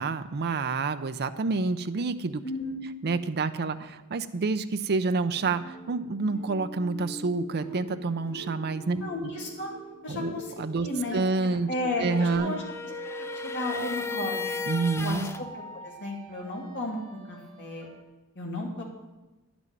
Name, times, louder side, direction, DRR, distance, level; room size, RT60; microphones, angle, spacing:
voice 1, 0.0-2.4 3.0-9.0 10.1-11.7 12.0-12.5 14.7-15.3, right 3 dB, 50° right, 10 dB, 0.6 m, -28 dB
sound 1, 5.3-12.4, right 1 dB, 75° left, 3.1 m, -44 dB
voice 2, 9.0-9.7 10.0-10.5 10.8-11.2 11.7-12.6 13.2-14.5 15.0-15.2 15.8-17.9 18.3-18.8, left 2 dB, 55° left, -2 dB, 2.8 m, -33 dB
sound 2, 11.8-15.4, left 5 dB, 10° left, 0.5 m, -35 dB
sound 3, 12.9-18.0, right 3 dB, 80° right, 2.0 m, -44 dB
10.5 x 6.2 x 8.9 m, 1.1 s
head